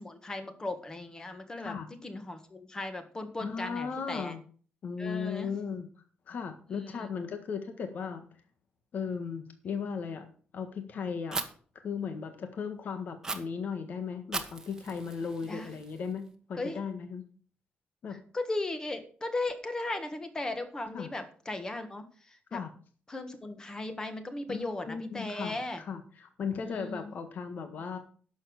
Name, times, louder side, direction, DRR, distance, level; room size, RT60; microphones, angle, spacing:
voice 1, 0.0-4.3 5.0-5.5 6.7-7.1 15.5-15.7 16.6-16.8 18.1-22.6 23.1-25.8 26.6-27.1, left 2 dB, 20° left, 8 dB, 1.6 m, -37 dB
voice 2, 3.4-4.4 4.8-5.9 6.3-8.2 8.9-10.2 10.5-11.4 11.7-17.2 18.0-18.2 20.9-21.1 22.5-22.7 24.5-28.0, left 6 dB, 50° left, 7 dB, 1.6 m, -36 dB
Fire, 11.3-11.4 13.2-13.4 14.3-16.3, right 3 dB, 15° right, 1.4 m, -38 dB
11.5 x 7.2 x 6.5 m, 0.43 s
wide cardioid pair, 165°, 4 cm